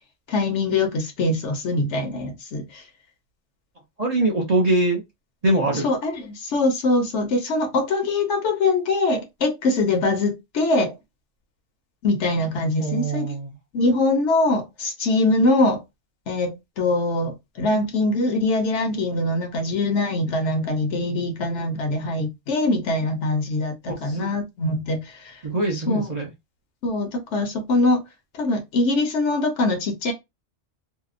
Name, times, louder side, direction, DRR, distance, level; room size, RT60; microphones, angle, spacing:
voice 1, 0.3-2.6 5.8-10.9 12.0-13.3 13.7-15.8 16.3-25.0 25.7-26.1 26.8-28.0 28.4-30.1, left 2 dB, 70° left, 1.0 m, -23 dB
voice 2, 4.0-5.0 5.4-5.9 12.8-13.6 23.9-24.3 25.4-26.3, right 2 dB, 45° right, 0.6 m, -23 dB
2.7 x 2.0 x 2.4 m
omnidirectional pair, 1.2 m